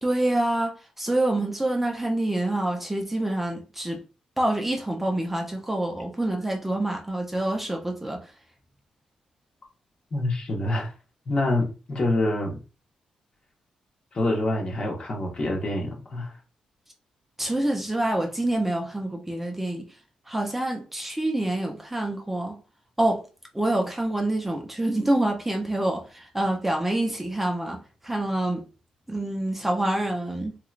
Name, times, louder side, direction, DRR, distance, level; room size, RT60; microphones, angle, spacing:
voice 1, 0.0-4.0 4.4-8.3 17.4-19.9 20.3-22.6 23.0-23.2 23.5-28.7 29.1-30.6, right 1 dB, 10° right, 0.6 m, -26 dB
voice 2, 10.1-10.9 11.3-12.6 14.1-16.4, left 1 dB, 45° left, 1.2 m, -26 dB
2.9 x 2.9 x 2.4 m
cardioid pair, 80°, 2 cm